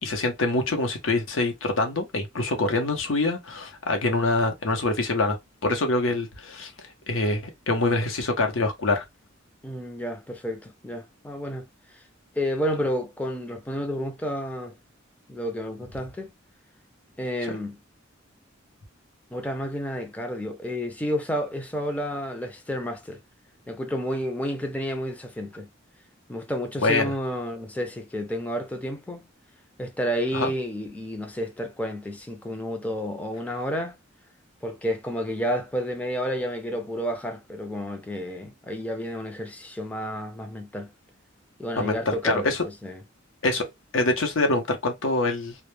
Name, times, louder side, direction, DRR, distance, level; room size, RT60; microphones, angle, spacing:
voice 1, 0.0-5.4 5.6-6.7 7.1-9.0 17.5-17.6 26.8-27.1 30.3-30.5 41.7-42.6 43.4-43.7 43.9-45.6, left 2 dB, 85° left, 0.7 m, -25 dB
voice 2, 9.6-11.7 11.9-12.0 12.4-14.7 15.3-16.3 17.2-17.8 19.3-23.2 23.7-25.7 26.3-29.2 29.8-34.0 34.6-40.9 41.6-43.0, equal, 5° left, 0.3 m, -30 dB
2.1 x 2.0 x 3.0 m
head